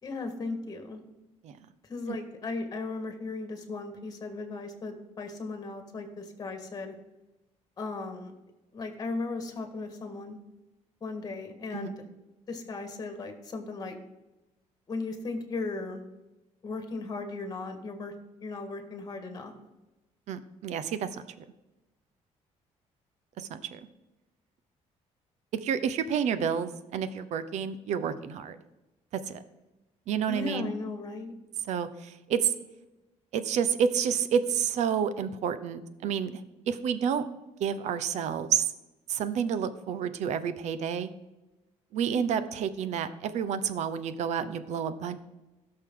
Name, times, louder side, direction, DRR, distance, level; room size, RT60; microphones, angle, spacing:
voice 1, 0.0-1.0 1.8-6.9 7.8-8.3 8.7-10.4 11.0-12.0 12.5-14.0 14.9-16.0 16.6-18.1 18.4-19.5 30.3-31.3, left 3 dB, 30° left, 6 dB, 1.7 m, -36 dB
voice 2, 20.3-21.2 23.4-23.8 25.6-28.6 29.3-29.4 30.1-30.7 31.7-32.5 33.3-36.4 36.7-37.2 37.6-38.7 39.1-41.1 41.9-45.2, right 7 dB, 70° right, 13 dB, 0.8 m, -29 dB
16.5 x 6.7 x 3.8 m, 1.0 s
cardioid pair, 145°, 12 cm